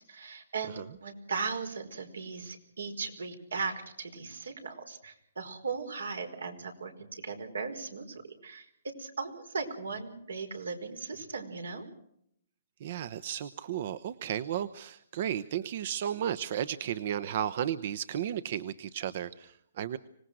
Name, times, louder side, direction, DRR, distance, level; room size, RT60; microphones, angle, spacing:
voice 1, 0.1-8.7 9.0-11.8, right 4 dB, 90° right, 6 dB, 5.1 m, -38 dB
voice 2, 12.8-20.0, right 10 dB, 55° right, 15 dB, 0.9 m, -34 dB
25.5 x 19.0 x 6.4 m, 0.71 s
hypercardioid pair, 145°, 0 cm